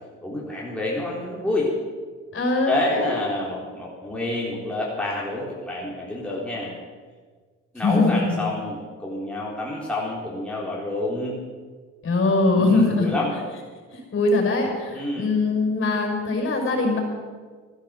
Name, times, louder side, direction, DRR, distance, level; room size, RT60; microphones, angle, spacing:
voice 1, 0.2-1.7 2.7-6.7 7.7-11.4 12.6-13.3 14.9-15.3, left 2 dB, 5° left, -5 dB, 3.9 m, -28 dB
voice 2, 2.3-3.1 7.8-8.2 12.0-13.1 13.9-17.0, left 3 dB, 45° left, 1 dB, 5.8 m, -22 dB
14.5 x 11.5 x 7.8 m, 1.5 s
cardioid pair, 90°, 30 cm